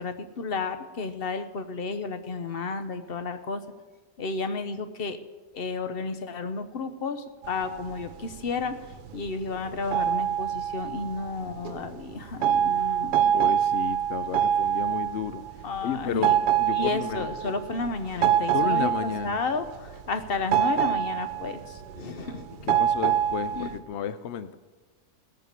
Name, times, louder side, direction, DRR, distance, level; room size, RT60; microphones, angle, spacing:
voice 1, 0.0-3.6 4.2-5.2 5.5-8.7 9.1-13.5 15.6-16.3 16.7-22.5 23.5-23.7, left 4 dB, 45° left, 9 dB, 0.9 m, -32 dB
sound 1, 7.4-23.8, right 10 dB, 90° right, 1.4 m, -26 dB
voice 2, 13.3-15.4 15.8-16.3 16.6-17.3 18.5-19.4 22.7-24.6, left 8 dB, 80° left, 13 dB, 0.6 m, -32 dB
17.0 x 7.7 x 6.8 m, 1.3 s
omnidirectional pair, 1.8 m